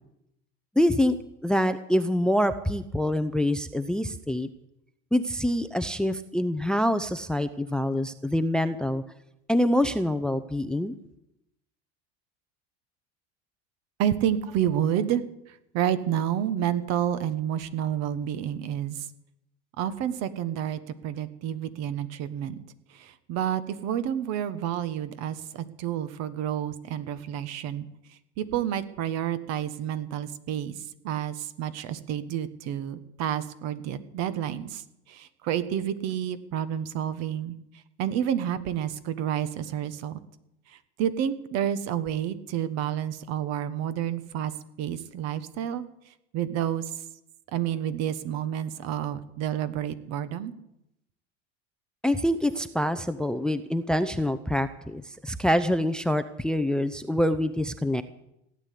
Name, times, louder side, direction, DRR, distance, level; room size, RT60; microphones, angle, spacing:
voice 1, 0.8-1.2 1.4-4.5 5.1-9.0 9.5-10.9 52.0-58.0, left 1 dB, 5° left, 11 dB, 0.6 m, -25 dB
voice 2, 14.0-19.1 19.8-22.6 22.9-37.5 38.0-40.2 40.7-44.5 44.8-45.8 46.3-46.9 47.5-50.5, right 10 dB, 55° right, 13 dB, 1.4 m, -30 dB
17.0 x 9.7 x 8.4 m, 0.83 s
supercardioid pair, 125°, 31 cm